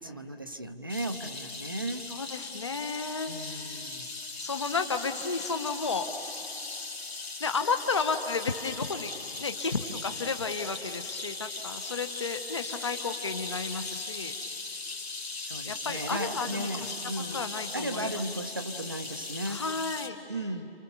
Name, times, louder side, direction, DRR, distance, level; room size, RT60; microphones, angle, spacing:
voice 1, 0.0-2.0 3.3-4.1 15.4-17.4 17.7-19.7 20.3-20.7, right 1 dB, 20° right, 8 dB, 0.6 m, -36 dB
sound 1, 0.9-20.1, left 3 dB, 90° left, 3.0 m, -39 dB
voice 2, 2.1-3.9 4.4-6.6 7.4-9.1 9.4-14.4 15.7-16.9 17.3-18.2 19.5-20.2, left 4 dB, 30° left, 8 dB, 0.7 m, -33 dB
30.0 x 27.0 x 6.8 m, 2.8 s
figure-of-eight pair, 165°, 31 cm